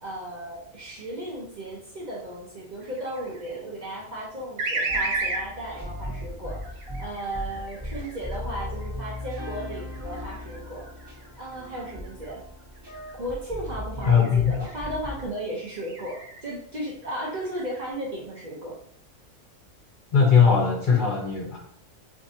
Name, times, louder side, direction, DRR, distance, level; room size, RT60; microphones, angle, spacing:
voice 1, 0.0-10.9 11.4-12.4 13.2-18.8, right 1 dB, 45° right, -4 dB, 0.6 m, -35 dB
sound 1, 2.8-3.6 4.6-5.5 6.5-8.3 9.0-12.3 12.8-13.1 14.0-14.9 15.7-16.4 16.9-17.8, right 2 dB, 75° right, 1.1 m, -34 dB
sound 2, 4.9-15.3, left 1 dB, 20° right, 0.9 m, -37 dB
voice 2, 14.0-14.6 20.1-21.6, left 6 dB, 45° left, -1 dB, 0.7 m, -19 dB
4.4 x 2.6 x 2.7 m, 0.69 s
omnidirectional pair, 1.3 m